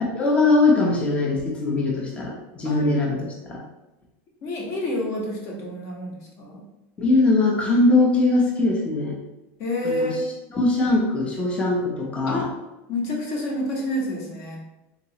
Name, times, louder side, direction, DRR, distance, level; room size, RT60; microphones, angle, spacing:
voice 1, 0.1-3.6 7.0-9.2 9.8-10.1 10.5-12.4, left 2 dB, 15° left, -1 dB, 0.6 m, -21 dB
voice 2, 2.6-3.1 4.4-6.6 9.6-10.3 12.3-12.5 12.9-14.6, left 1 dB, 45° left, -1 dB, 1.0 m, -28 dB
3.8 x 2.9 x 2.9 m, 0.98 s
supercardioid pair, 160°, 7 cm